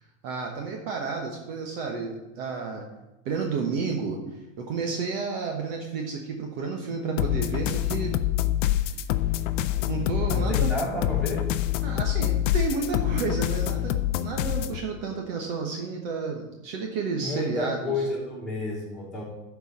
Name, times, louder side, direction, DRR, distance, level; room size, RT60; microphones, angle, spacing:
voice 1, 0.2-2.8 3.2-4.2 4.6-8.1 8.7-9.0 9.9-10.7 11.8-18.1, right 4 dB, 45° right, 1 dB, 1.2 m, -31 dB
sound 1, 7.2-14.8, left 13 dB, 65° left, 0.7 m, -26 dB
voice 2, 10.3-11.5 17.2-19.2, left 2 dB, ahead, -9 dB, 3.2 m, -31 dB
12.0 x 4.7 x 5.4 m, 1.0 s
supercardioid pair, 170°, 39 cm